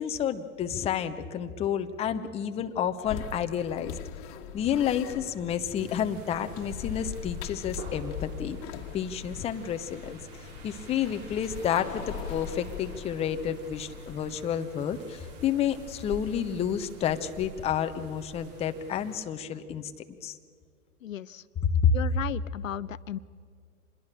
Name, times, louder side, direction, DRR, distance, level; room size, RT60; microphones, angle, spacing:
voice 1, 0.0-3.9 4.5-8.6 8.9-10.2 10.6-19.9 20.2-20.4 21.7-22.0, left 8 dB, 15° left, 8 dB, 0.7 m, -30 dB
sound 1, 3.0-14.5, left 9 dB, 35° left, 1.6 m, -41 dB
sound 2, 5.8-19.2, right 3 dB, 40° right, 4.3 m, -47 dB
voice 2, 21.0-21.4 21.9-23.2, left 11 dB, 65° left, 16 dB, 0.6 m, -35 dB
26.0 x 21.0 x 6.7 m, 2.2 s
figure-of-eight pair, 110°, 43 cm